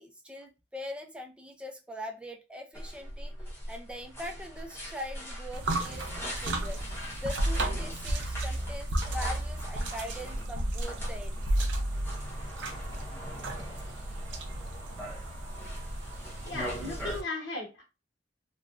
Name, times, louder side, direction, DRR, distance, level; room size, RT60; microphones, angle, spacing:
voice 1, 0.0-3.3 3.7-6.8 7.2-11.4, left 1 dB, 5° right, 3 dB, 0.4 m, -42 dB
sound 1, 2.7-17.2, equal, 15° left, 1.1 m, -41 dB
sound 2, 5.5-17.2, right 1 dB, 85° right, 0.6 m, -34 dB
voice 2, 16.4-17.8, left 2 dB, 65° left, -3 dB, 0.9 m, -36 dB
3.3 x 2.2 x 2.4 m, 0.27 s
head